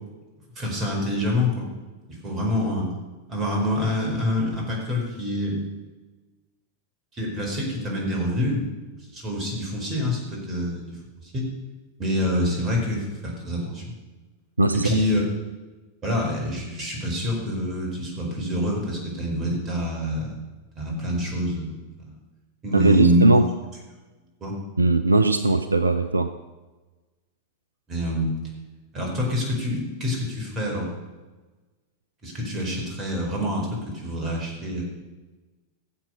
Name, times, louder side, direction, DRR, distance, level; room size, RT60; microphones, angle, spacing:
voice 1, 0.5-1.7 2.1-2.9 3.3-5.6 7.1-8.7 9.1-11.4 12.0-13.9 14.8-15.2 16.0-20.4 20.8-21.7 22.0-22.2 22.6-23.3 24.4-24.6 27.9-28.3 28.9-30.9 32.2-34.8, left 1 dB, 30° right, 0 dB, 5.0 m, -26 dB
voice 2, 14.6-14.9 22.7-23.5 24.8-26.3, right 2 dB, 80° right, 11 dB, 0.5 m, -19 dB
15.5 x 7.8 x 6.6 m, 1.2 s
figure-of-eight pair, 90°, 0 cm